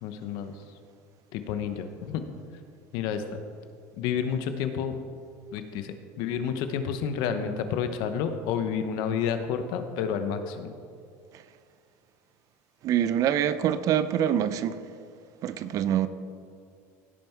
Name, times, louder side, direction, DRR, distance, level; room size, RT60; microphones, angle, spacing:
voice 1, 0.0-0.6 1.3-2.2 2.9-3.2 4.0-4.9 5.5-10.7, left 7 dB, 70° left, 1.0 m, -30 dB
voice 2, 12.8-14.8 15.4-16.1, right 10 dB, 50° right, 0.5 m, -25 dB
16.5 x 5.5 x 4.6 m
supercardioid pair, 115°, 7 cm